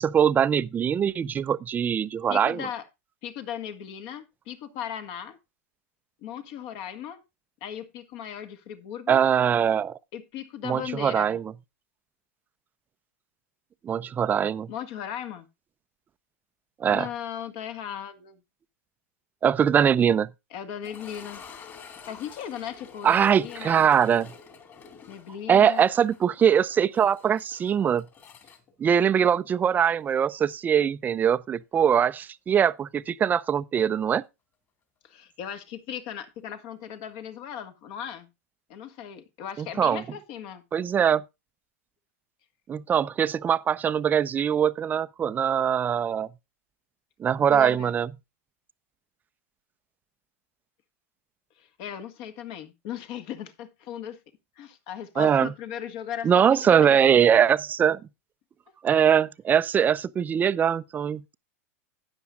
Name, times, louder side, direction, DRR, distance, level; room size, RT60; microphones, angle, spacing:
voice 1, 0.0-2.7 9.1-10.0 10.6-11.5 13.8-14.7 16.8-17.1 19.4-20.3 23.0-24.3 25.5-28.0 28.8-34.2 39.6-40.0 40.7-41.2 42.7-46.3 47.2-48.1 55.2-55.5 56.2-58.0 58.8-61.3, right 8 dB, 20° right, 0.5 m, -22 dB
voice 2, 2.3-2.9 3.2-5.4 6.2-7.2 7.6-9.2 10.1-11.4 14.7-15.5 16.9-18.4 20.5-21.4 22.0-23.9 25.1-25.8 35.0-38.3 38.7-40.6 47.5-47.9 51.6-54.2 54.6-57.0, left 9 dB, 50° left, 1.8 m, -37 dB
sound 1, 20.8-29.7 30.0-30.1 30.7-30.8 33.4-33.5, left 6 dB, 30° left, 3.0 m, -48 dB
12.5 x 9.7 x 2.4 m
hypercardioid pair, 115°, 8 cm